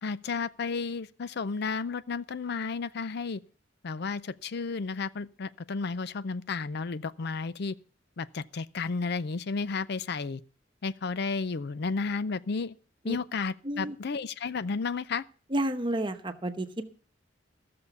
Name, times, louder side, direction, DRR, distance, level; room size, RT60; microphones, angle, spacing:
voice 1, 0.0-3.4 3.8-7.7 8.2-10.4 10.8-12.7 13.0-15.2, left 4 dB, 60° left, 0.5 m, -32 dB
voice 2, 15.5-16.9, right 1 dB, 25° right, 1.0 m, -31 dB
15.0 x 6.8 x 7.0 m
head